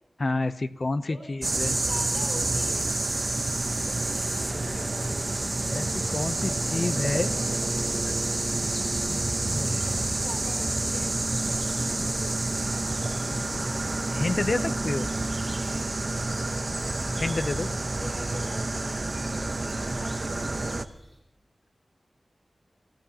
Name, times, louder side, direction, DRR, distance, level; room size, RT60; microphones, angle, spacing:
voice 1, 0.2-1.8 5.7-7.3 9.1-9.7 13.3-15.1 17.2-17.7, left 2 dB, 50° left, 11 dB, 0.7 m, -30 dB
voice 2, 0.9-3.0 3.9-5.3 9.4-12.8 17.8-19.1 20.0-20.8, left 1 dB, 20° left, 3 dB, 3.3 m, -45 dB
sound 1, 1.4-20.8, right 2 dB, 40° right, 0.9 m, -28 dB
sound 2, 8.7-21.2, right 1 dB, 5° left, 6.3 m, -50 dB
29.0 x 14.5 x 2.9 m, 0.85 s
wide cardioid pair, 75°, 0 cm